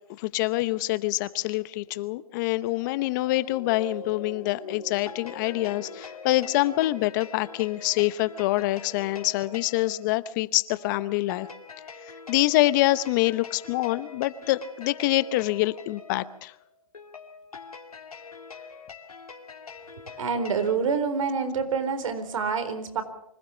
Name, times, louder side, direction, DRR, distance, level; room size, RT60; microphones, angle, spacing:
voice 1, 0.2-11.5 12.3-16.5, left 17 dB, 35° left, 16 dB, 0.8 m, -25 dB
sound 1, 2.5-9.2 9.8-10.0, left 3 dB, 50° left, 3.5 m, -44 dB
sound 2, 4.9-20.8, left 5 dB, 85° left, 2.6 m, -44 dB
voice 2, 20.2-23.0, right 5 dB, 65° right, 9 dB, 4.1 m, -27 dB
25.5 x 15.5 x 7.3 m, 0.77 s
hypercardioid pair, 140°, 18 cm